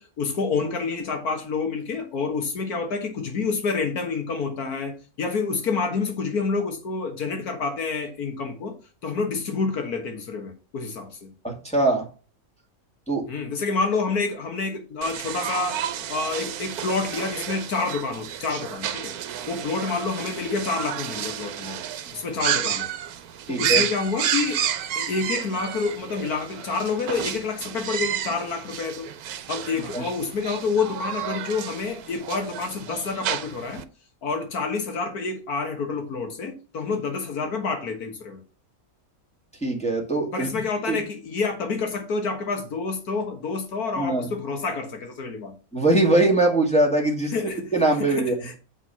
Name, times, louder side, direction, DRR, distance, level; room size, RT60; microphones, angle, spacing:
voice 1, 0.0-8.8 9.0-11.3 13.3-15.8 16.1-19.1 19.5-21.8 22.1-22.9 23.5-24.6 24.9-29.1 29.5-33.9 34.2-38.4 40.3-45.5 47.3-47.7 48.0-48.6, left 4 dB, 85° left, 2.0 m, -28 dB
voice 2, 11.4-12.1 13.1-13.3 23.5-23.8 29.9-30.1 39.6-40.5 40.9-41.0 44.0-44.3 45.7-47.3 47.7-48.5, right 2 dB, 5° left, 2.0 m, -22 dB
sound 1, 15.0-33.8, right 10 dB, 85° right, 1.2 m, -31 dB
7.8 x 4.6 x 5.7 m
omnidirectional pair, 1.6 m